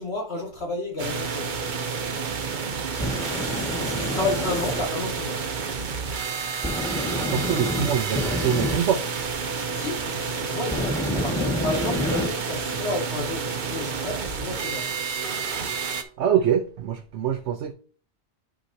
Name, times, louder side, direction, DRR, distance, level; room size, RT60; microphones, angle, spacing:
voice 1, 0.0-1.5 3.8-5.4 9.7-14.9, left 2 dB, 65° left, 2.4 m, -31 dB
sound 1, 1.0-16.0, right 5 dB, 50° right, 0.9 m, -30 dB
sound 2, 2.9-4.8 6.6-8.9 10.7-12.3, left 1 dB, 5° left, 1.8 m, -28 dB
voice 2, 7.2-9.0 16.2-17.7, right 9 dB, 90° right, 0.9 m, -24 dB
10.5 x 4.9 x 2.8 m
omnidirectional pair, 1.1 m